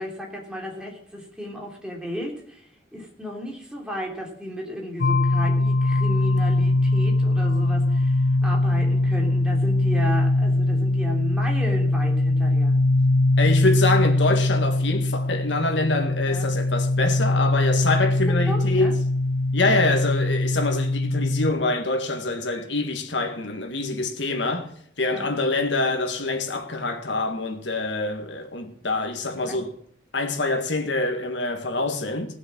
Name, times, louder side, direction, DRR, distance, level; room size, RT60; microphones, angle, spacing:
voice 1, 0.0-12.7 16.3-16.5 18.5-18.9 25.1-25.3 29.4-29.6, equal, 5° right, 3.1 m, -34 dB
sound 1, 5.0-21.5, left 2 dB, 60° left, 0.5 m, -21 dB
voice 2, 13.4-18.9 19.5-29.7 30.1-32.4, left 2 dB, 80° left, 1.7 m, -25 dB
18.5 x 6.5 x 6.1 m
head